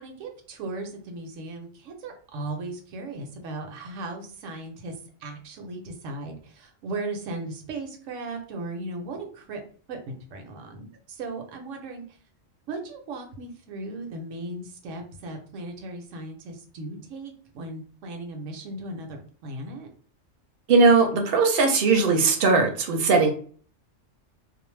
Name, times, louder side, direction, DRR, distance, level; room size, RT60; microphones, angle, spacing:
voice 1, 0.0-9.6 9.9-12.0 12.7-19.9, right 2 dB, 80° right, 3 dB, 1.0 m, -37 dB
voice 2, 20.7-23.3, right 4 dB, 55° right, 4 dB, 0.8 m, -19 dB
2.5 x 2.0 x 3.1 m, 0.44 s
omnidirectional pair, 1.3 m